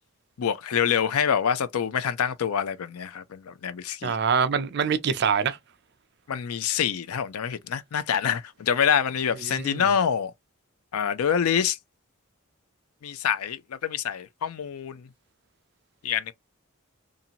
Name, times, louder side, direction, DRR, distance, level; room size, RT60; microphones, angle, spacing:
voice 1, 0.4-4.2 6.3-10.3 10.9-11.8 13.0-15.1 16.0-16.3, left 8 dB, 80° left, 0.4 m, -26 dB
voice 2, 4.0-5.6 9.5-9.8, right 6 dB, 50° right, 0.4 m, -24 dB
2.6 x 2.5 x 2.7 m
head